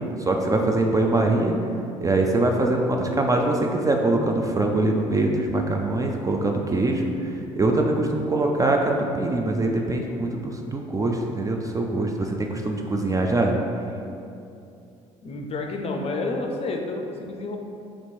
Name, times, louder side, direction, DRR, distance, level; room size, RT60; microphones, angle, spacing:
voice 1, 0.2-1.5 2.0-13.5, right 2 dB, 20° right, 2 dB, 0.4 m, -23 dB
voice 2, 15.2-17.6, left 2 dB, 35° left, 2 dB, 0.5 m, -29 dB
3.0 x 2.9 x 4.2 m, 2.6 s
hypercardioid pair, 55°, 17 cm